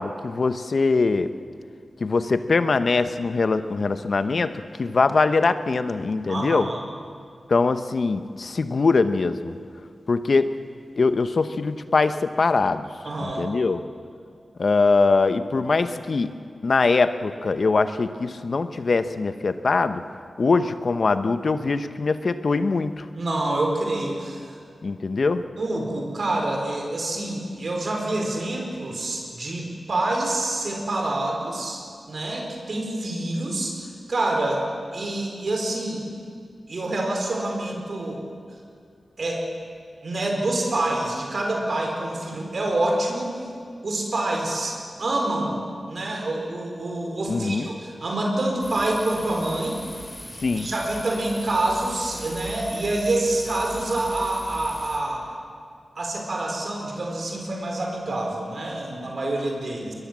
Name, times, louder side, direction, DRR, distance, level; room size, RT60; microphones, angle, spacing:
voice 1, 0.0-1.3 2.0-6.7 7.5-9.5 10.1-10.5 11.0-12.9 13.2-13.8 14.6-16.3 16.6-20.0 20.4-23.1 24.8-25.4 47.3-47.7 50.4-50.7, left 4 dB, 65° left, 10 dB, 1.1 m, -22 dB
voice 2, 6.3-6.8 13.0-13.5 23.1-24.6 25.6-34.6 34.9-36.0 36.7-38.2 39.2-39.4 40.0-43.4 43.8-45.6 45.9-49.8 50.5-55.3 56.0-59.9, right 2 dB, 65° right, 1 dB, 4.7 m, -27 dB
sound 1, 48.6-55.0, left 1 dB, 15° left, 6.0 m, -40 dB
22.0 x 21.5 x 7.6 m, 2.2 s
cardioid pair, 50°, 0 cm